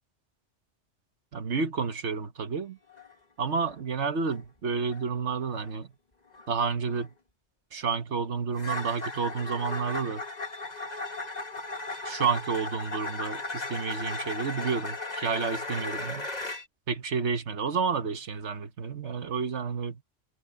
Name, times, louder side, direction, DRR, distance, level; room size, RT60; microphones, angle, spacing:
voice 1, 1.3-2.8 3.4-5.9 6.5-7.1 7.7-10.2 12.0-16.3 16.9-20.0, right 5 dB, 70° right, 1.6 m, -30 dB
sound 1, 2.9-3.1 3.4-3.8 4.2-4.5 4.8-5.1 5.5-5.7 6.3-6.5 6.9-7.1 8.5-16.7, left 3 dB, 35° left, 2.2 m, -36 dB
omnidirectional pair, 1.2 m